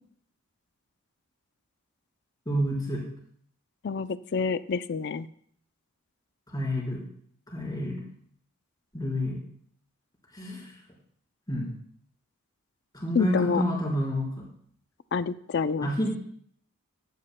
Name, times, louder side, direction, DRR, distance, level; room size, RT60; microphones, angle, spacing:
voice 1, 2.5-3.0 6.5-7.0 7.5-8.0 8.9-9.4 10.3-10.7 11.5-11.7 12.9-14.5 15.8-16.2, equal, 15° left, -4 dB, 4.0 m, -29 dB
voice 2, 3.8-5.3 13.1-13.6 15.1-15.9, left 5 dB, 50° left, 14 dB, 0.4 m, -27 dB
15.0 x 12.0 x 2.2 m, 0.63 s
head